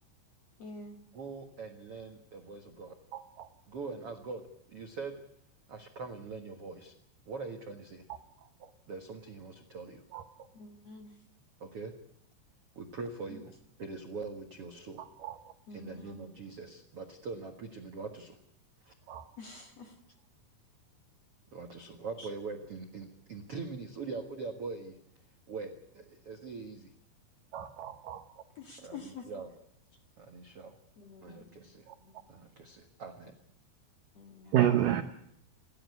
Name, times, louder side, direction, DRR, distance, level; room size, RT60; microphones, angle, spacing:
voice 1, 0.6-1.0 10.5-11.1 13.3-13.4 15.7-16.3 19.4-20.0 22.2-22.3 28.5-29.2 31.0-31.6 32.0-32.2 34.1-34.6, left 4 dB, 50° left, 4 dB, 2.2 m, -48 dB
voice 2, 1.1-2.9 3.7-5.1 5.7-6.9 7.3-8.0 8.9-10.0 11.6-11.9 12.7-15.0 15.7-18.4 18.8-18.9 21.5-24.9 25.5-26.9 28.8-29.5 30.2-30.7 31.2-31.9 32.3-33.3 34.4-34.5, right 4 dB, 60° right, 4 dB, 1.5 m, -42 dB
voice 3, 3.1-3.5 10.1-10.2 15.2-15.4 19.1-19.2 27.5-28.2 34.5-35.0, right 11 dB, 75° right, 7 dB, 2.0 m, -29 dB
29.0 x 11.5 x 9.7 m, 0.77 s
omnidirectional pair, 5.2 m